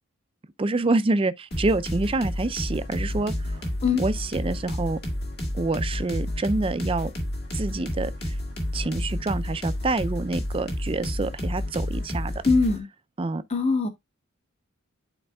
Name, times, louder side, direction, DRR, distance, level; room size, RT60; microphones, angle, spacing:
voice 1, 0.6-3.7 4.0-5.0 5.5-7.1 7.5-8.4 8.7-12.3 13.2-13.4, right 2 dB, 25° right, 0.4 m, -27 dB
sound 1, 1.5-12.8, left 1 dB, 50° left, 2.1 m, -30 dB
voice 2, 12.4-12.9 13.5-13.9, left 4 dB, 30° left, 1.0 m, -21 dB
11.0 x 4.4 x 2.3 m
head